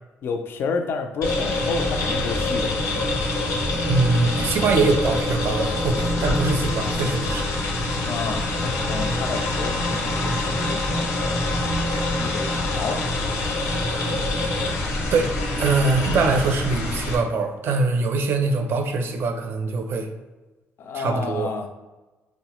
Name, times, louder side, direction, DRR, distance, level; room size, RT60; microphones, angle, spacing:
voice 1, 0.2-2.7 8.0-13.0 20.8-21.7, left 4 dB, 50° left, 5 dB, 0.3 m, -31 dB
sound 1, 1.2-17.2, left 2 dB, 90° left, 0.7 m, -25 dB
voice 2, 3.9-7.5 15.1-15.3 15.6-20.1 20.9-21.7, right 3 dB, 50° right, 5 dB, 0.4 m, -23 dB
4.6 x 2.0 x 2.9 m, 1.2 s
cardioid pair, 160°, 5 cm